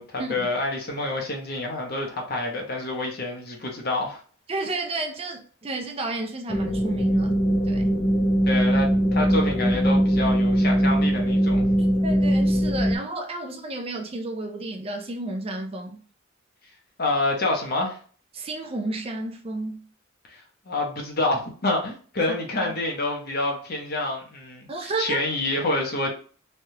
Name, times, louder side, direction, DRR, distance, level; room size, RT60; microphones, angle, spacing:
voice 1, 0.0-4.2 8.5-11.6 17.0-18.0 20.3-20.4 20.7-24.7 25.0-26.1, left 2 dB, 50° left, 0.8 m, -27 dB
voice 2, 4.5-7.3 7.7-8.0 11.8-16.0 18.3-19.8 22.3-22.4 22.6-22.7 24.7-25.2, right 2 dB, 30° right, 0.4 m, -32 dB
sound 1, 6.5-13.0, equal, 20° left, 0.6 m, -21 dB
3.2 x 2.3 x 2.7 m
head